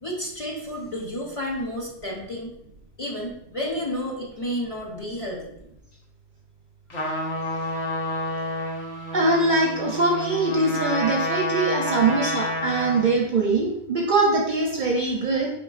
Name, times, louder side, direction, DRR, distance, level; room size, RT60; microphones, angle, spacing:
voice 1, 0.0-2.6 3.0-5.5, equal, 35° left, -3 dB, 0.7 m, -31 dB
Trumpet, 6.9-13.2, left 1 dB, 90° left, 1.3 m, -29 dB
voice 2, 9.1-15.5, right 3 dB, 55° right, -1 dB, 0.6 m, -22 dB
4.6 x 3.8 x 2.4 m, 0.78 s
omnidirectional pair, 1.2 m